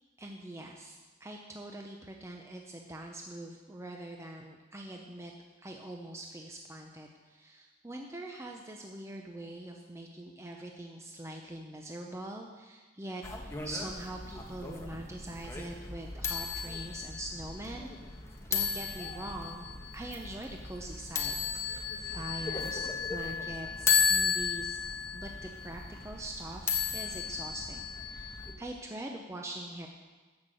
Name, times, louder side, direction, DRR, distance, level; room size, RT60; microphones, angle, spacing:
voice 1, 0.2-5.3 5.6-17.9 18.5-19.7 19.9-24.8 25.1-29.9, right 1 dB, 15° right, 1 dB, 0.7 m, -43 dB
sound 1, 13.2-28.5, left 5 dB, 15° left, 1.2 m, -34 dB
13.0 x 5.8 x 7.7 m, 1.4 s
head